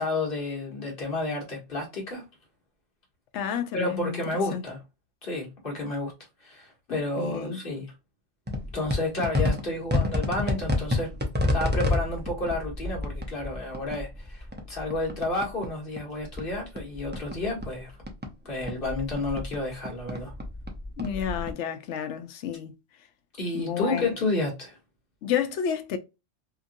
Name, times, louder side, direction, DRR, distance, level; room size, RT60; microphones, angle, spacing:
voice 1, 0.0-2.3 3.7-4.8 5.2-6.1 6.4-7.9 8.7-11.1 11.5-17.9 18.4-20.3 23.4-24.8, left 2 dB, 50° left, 1.4 m, -31 dB
voice 2, 3.3-4.2 4.5-4.6 7.2-7.6 21.0-22.7 23.5-24.1 25.2-26.0, left 8 dB, 75° left, 0.9 m, -30 dB
sound 1, 8.5-15.7 16.0-18.3 18.6-21.5, left 2 dB, 15° right, 0.4 m, -29 dB
2.9 x 2.5 x 2.6 m
omnidirectional pair, 1.2 m